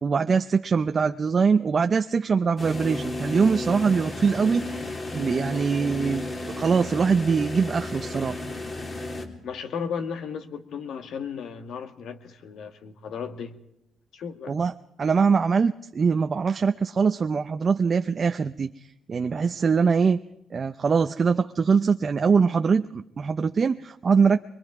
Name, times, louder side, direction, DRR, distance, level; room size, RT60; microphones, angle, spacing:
voice 1, 0.0-4.7 5.1-6.2 6.6-8.4 14.5-14.7 15.0-18.7 19.1-20.2 20.5-24.4, right 5 dB, 40° right, 7 dB, 0.7 m, -22 dB
sound 1, 2.6-9.2, left 2 dB, 35° left, 3.3 m, -33 dB
voice 2, 9.4-13.6 14.1-14.5, left 6 dB, 70° left, 7 dB, 1.9 m, -35 dB
24.0 x 23.0 x 4.9 m, 0.81 s
cardioid pair, 90°, 0 cm